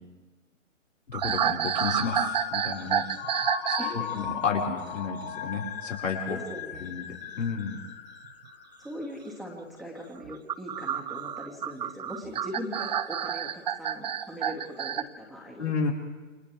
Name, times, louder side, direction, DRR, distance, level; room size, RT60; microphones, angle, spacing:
voice 1, 1.1-3.0 3.7-6.4 6.8-7.0 7.4-7.8 15.6-15.9, left 5 dB, 70° left, -2 dB, 5.6 m, -31 dB
sound 1, 1.1-4.0 4.2-4.5 6.7-7.0 8.2-8.3 10.3-15.0, right 9 dB, 35° right, 0.5 m, -29 dB
sound 2, 1.8-9.0, left 9 dB, 40° left, 1.9 m, -38 dB
voice 2, 3.8-4.1 6.3-6.9 8.8-15.7, equal, ahead, -3 dB, 2.3 m, -40 dB
29.5 x 26.5 x 3.6 m, 1.2 s
figure-of-eight pair, 140°, 40 cm